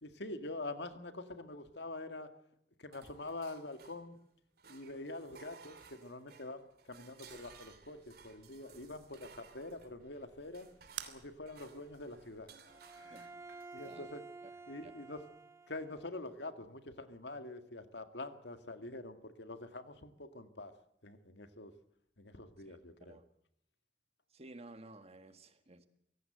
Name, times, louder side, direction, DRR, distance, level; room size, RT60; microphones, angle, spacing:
voice 1, 0.0-2.3 2.8-4.2 4.7-10.7 11.0-12.5 12.9-13.3 13.7-14.2 14.7-15.2 15.7-20.7 21.0-21.7 22.2-23.2, left 2 dB, 75° left, 1.9 m, -45 dB
sound 1, 2.9-4.3 4.6-14.0, right 5 dB, 60° right, 2.9 m, -59 dB
sound 2, 7.3-12.5, right 10 dB, 90° right, 2.0 m, -54 dB
Bowed string instrument, 12.7-16.1, right 3 dB, 15° right, 1.3 m, -52 dB
voice 2, 22.7-23.2 24.3-25.9, right 2 dB, 35° right, 1.8 m, -54 dB
24.0 x 17.0 x 7.9 m
head